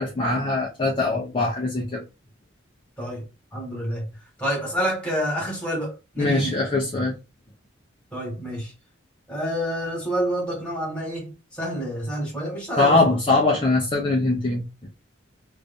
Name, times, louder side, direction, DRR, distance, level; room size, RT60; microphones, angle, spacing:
voice 1, 0.0-2.0 6.2-7.1 12.8-14.9, left 2 dB, 25° left, 0.7 m, -22 dB
voice 2, 3.5-4.1 4.4-6.6 8.1-8.7 9.3-13.1, equal, 5° left, 1.6 m, -28 dB
3.2 x 2.6 x 3.5 m
head